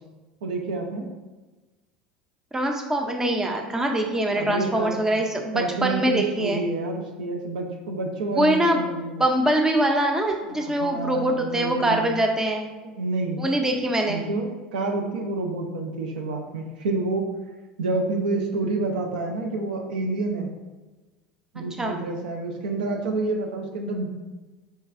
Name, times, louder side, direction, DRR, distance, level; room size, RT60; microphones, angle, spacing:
voice 1, 0.4-1.1 4.4-4.9 5.5-9.2 10.6-12.1 12.8-13.4 14.1-17.2 17.8-20.5 21.5-24.1, right 3 dB, 75° right, 2 dB, 0.5 m, -28 dB
voice 2, 2.5-6.6 8.3-8.8 9.2-12.7 13.4-14.2 21.6-22.0, right 1 dB, 10° right, 2 dB, 0.5 m, -23 dB
5.3 x 2.3 x 2.4 m, 1.2 s
hypercardioid pair, 75°, 5 cm